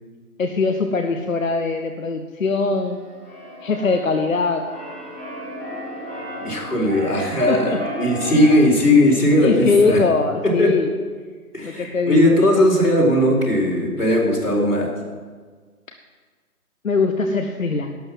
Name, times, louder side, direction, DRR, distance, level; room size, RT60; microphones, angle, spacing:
voice 1, 0.4-3.0 3.6-4.6 7.5-7.8 8.3-8.5 9.4-10.9 11.6-12.5 16.8-18.0, left 4 dB, 60° left, 6 dB, 0.9 m, -21 dB
Keyboard (musical), 2.7-8.6, equal, 5° right, 0.8 m, -34 dB
voice 2, 6.4-10.0 10.4-10.7 11.5-14.9, left 1 dB, 85° left, -2 dB, 4.1 m, -18 dB
11.5 x 8.0 x 7.5 m, 1.5 s
figure-of-eight pair, 150°, 45 cm